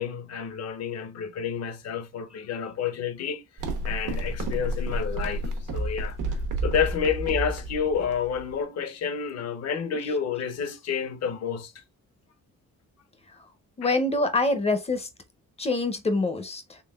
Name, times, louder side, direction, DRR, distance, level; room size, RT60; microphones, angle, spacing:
voice 1, 0.0-5.4 5.7-11.8 13.8-13.9, left 7 dB, 60° left, 0.7 m, -30 dB
sound 1, 3.6-8.6, right 1 dB, 80° right, 1.0 m, -30 dB
voice 2, 13.8-15.1 15.6-16.8, left 2 dB, 20° left, 0.6 m, -25 dB
3.8 x 3.4 x 2.3 m
cardioid pair, 150°, 30 cm